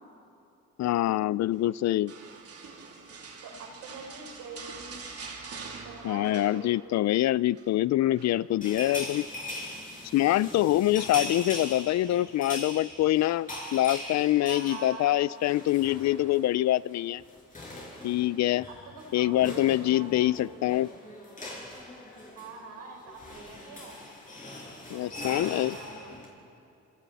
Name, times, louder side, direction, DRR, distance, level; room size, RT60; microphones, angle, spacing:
voice 1, 0.8-2.1 6.0-9.3 10.1-17.2 18.0-18.7 19.1-20.9 24.9-25.8, left 14 dB, 65° left, 21 dB, 0.5 m, -25 dB
sound 1, 2.1-7.1 7.3-7.7 8.2-9.2 10.3-10.8 11.3-11.4, right 4 dB, 50° right, 3.2 m, -45 dB
voice 2, 3.4-5.0 5.8-6.8 10.7-11.0 11.2-11.4 14.4-15.3 18.7-20.6 22.3-24.0 24.9-26.1, right 4 dB, 90° right, 2 dB, 4.5 m, -44 dB
sound 2, 8.6-16.5 16.7-16.9 17.2-26.3, left 1 dB, 25° left, 6.8 m, -41 dB
27.0 x 26.5 x 4.2 m, 2.7 s
cardioid pair, 90°, 30 cm